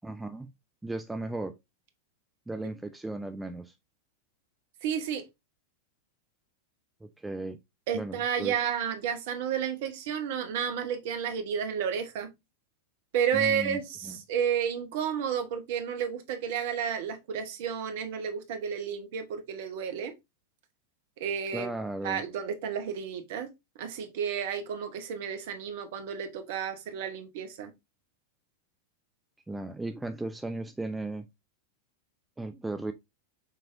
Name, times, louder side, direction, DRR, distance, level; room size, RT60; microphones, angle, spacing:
voice 1, 0.0-0.5 0.8-1.6 2.5-3.7 7.0-7.6 7.9-8.6 13.3-14.2 21.5-22.2 29.5-31.3 32.4-32.9, right 2 dB, 5° right, 0.4 m, -36 dB
voice 2, 4.8-5.2 7.9-12.3 13.1-20.1 21.2-21.7 22.0-23.5 23.8-27.7, right 8 dB, 50° right, 0.9 m, -31 dB
5.8 x 3.4 x 2.6 m
figure-of-eight pair, 90°, 0 cm